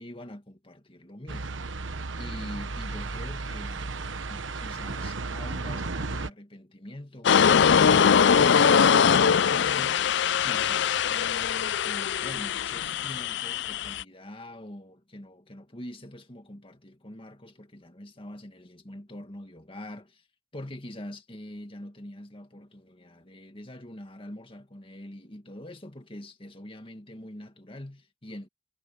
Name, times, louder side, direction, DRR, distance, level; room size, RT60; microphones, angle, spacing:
voice 1, 0.0-1.6 2.2-10.2 10.4-20.3 20.5-28.5, left 1 dB, 30° left, 2.1 m, -44 dB
sound 1, 1.3-6.3, right 3 dB, 80° right, 1.1 m, -34 dB
sound 2, 7.2-14.0, left 7 dB, 65° left, 0.4 m, -22 dB
head